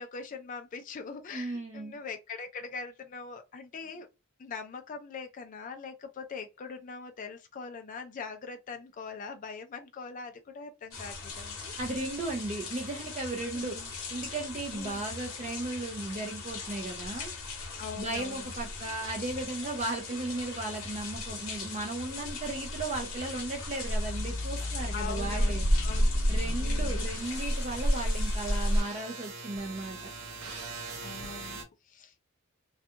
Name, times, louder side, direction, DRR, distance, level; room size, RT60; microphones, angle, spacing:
voice 1, 0.0-4.1 4.4-11.7 13.5-13.9 14.7-15.1 17.8-18.5 24.9-26.1 26.6-27.0 31.0-31.6 31.9-32.1, left 5 dB, 40° left, 0.4 m, -42 dB
voice 2, 1.3-2.0 11.8-13.7 14.1-17.3 18.0-25.6 26.3-30.1, right 2 dB, 35° right, 0.5 m, -36 dB
sound 1, 10.9-28.8, left 1 dB, 65° left, 0.9 m, -33 dB
sound 2, 24.0-31.6, left 1 dB, 65° right, 0.7 m, -38 dB
2.4 x 2.3 x 2.7 m
head